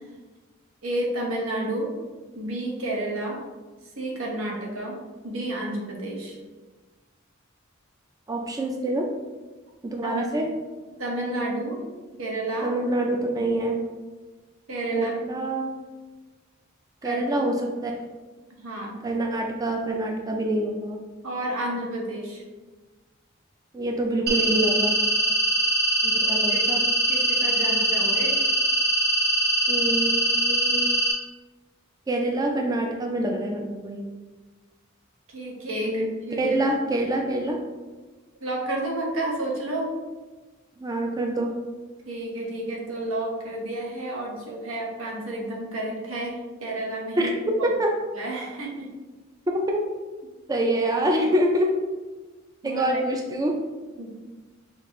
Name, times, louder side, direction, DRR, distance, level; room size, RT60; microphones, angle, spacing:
voice 1, 0.8-1.9 2.3-3.4 4.0-5.0 5.2-6.4 10.0-10.3 11.0-11.8 12.2-12.7 14.7-15.1 17.0-17.2 18.6-19.0 21.2-22.4 26.2-26.6 27.1-28.5 35.3-36.7 38.4-39.9 42.1-47.3 48.1-48.9 52.6-53.0 54.0-54.1, right 1 dB, 85° right, -2 dB, 1.0 m, -31 dB
voice 2, 8.3-9.1 9.8-10.5 12.6-13.8 14.9-15.7 17.0-17.9 19.0-21.0 23.7-24.9 26.0-26.8 29.7-30.9 32.1-34.0 35.8-36.1 36.4-37.6 40.8-41.5 47.2-47.3 47.6-47.9 49.7-49.8 50.5-51.7 52.6-53.5, right 1 dB, 20° right, 1 dB, 0.3 m, -26 dB
sound 1, 24.3-31.1, right 1 dB, 55° right, 0.8 m, -22 dB
5.2 x 2.4 x 3.0 m, 1.3 s
head